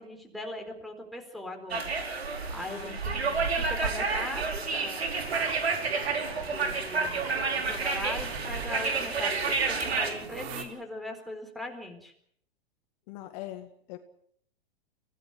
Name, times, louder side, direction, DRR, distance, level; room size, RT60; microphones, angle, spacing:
voice 1, 0.0-1.8 2.5-3.2 3.6-5.1 6.5-12.1, left 1 dB, ahead, 2 dB, 4.4 m, -40 dB
sound 1, 1.7-10.1, right 4 dB, 90° right, 4.9 m, -29 dB
voice 2, 2.7-3.0 3.3-3.5 13.1-14.0, left 15 dB, 45° left, 7 dB, 2.0 m, -42 dB
sound 2, 5.1-10.6, right 7 dB, 40° right, 3.7 m, -43 dB
25.5 x 17.5 x 7.3 m, 0.64 s
hypercardioid pair, 125°, 30 cm